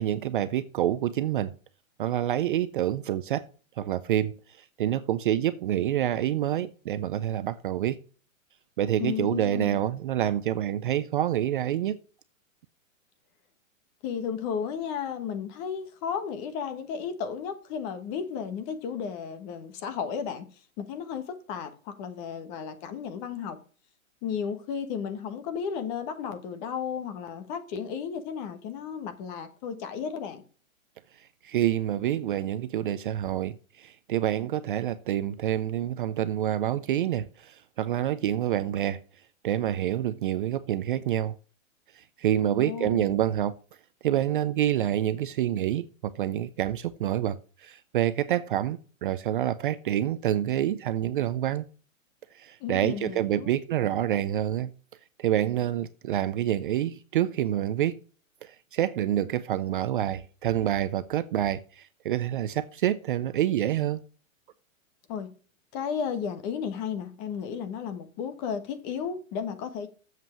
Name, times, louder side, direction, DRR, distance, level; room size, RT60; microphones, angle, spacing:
voice 1, 0.0-1.5 2.0-3.5 3.8-8.0 8.8-12.0 31.2-39.0 39.4-41.3 41.9-43.5 44.0-51.7 52.3-54.7 55.2-58.0 58.4-64.0, right 11 dB, 40° right, 0.4 m, -27 dB
voice 2, 9.0-9.8 14.0-20.4 20.8-23.6 24.2-30.4 42.4-43.1 52.6-53.5 65.1-65.3 65.7-69.9, left 7 dB, 30° left, 1.4 m, -34 dB
7.5 x 5.5 x 7.2 m
hypercardioid pair, 150°, 41 cm